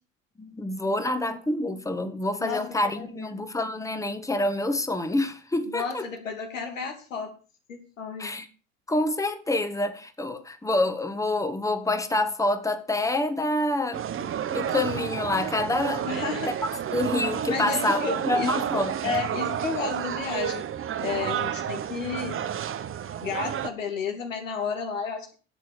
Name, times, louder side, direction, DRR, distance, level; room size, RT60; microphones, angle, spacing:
voice 1, 0.4-6.1 8.2-8.5 8.9-16.1 16.9-18.9, left 2 dB, 10° left, 1.7 m, -27 dB
voice 2, 3.0-3.3 5.6-7.3 7.7-8.3 16.0-16.6 17.5-18.5 19.0-20.7 21.0-22.4 23.2-25.3, left 5 dB, 90° left, 3.0 m, -32 dB
sound 1, 13.9-23.7, right 9 dB, 35° right, 1.2 m, -31 dB
11.5 x 7.6 x 6.9 m
hypercardioid pair, 80°, 37 cm